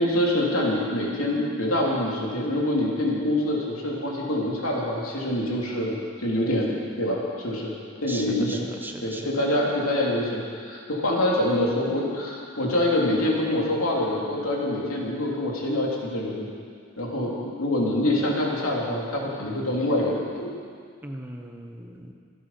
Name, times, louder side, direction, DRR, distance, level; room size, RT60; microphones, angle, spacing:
voice 1, 0.0-7.7 8.0-8.6 9.0-16.5 17.0-20.5, left 1 dB, 85° left, -3 dB, 3.2 m, -25 dB
voice 2, 8.1-9.2 21.0-22.1, right 1 dB, 10° right, 2 dB, 1.1 m, -38 dB
25.5 x 8.5 x 5.9 m, 2.2 s
head